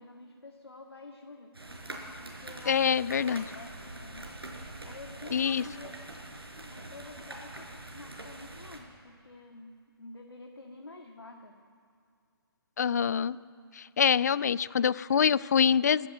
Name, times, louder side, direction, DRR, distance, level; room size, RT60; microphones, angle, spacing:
voice 1, 0.0-1.6 2.2-4.4 4.8-6.0 6.7-11.6, left 2 dB, 75° left, 3 dB, 1.8 m, -49 dB
sound 1, 1.5-8.8, right 1 dB, 75° right, 5.1 m, -44 dB
voice 2, 2.7-3.4 5.3-5.6 12.8-13.4 13.7-16.1, left 7 dB, 45° left, 21 dB, 0.4 m, -25 dB
24.0 x 12.5 x 8.6 m, 2.3 s
figure-of-eight pair, 140°, 13 cm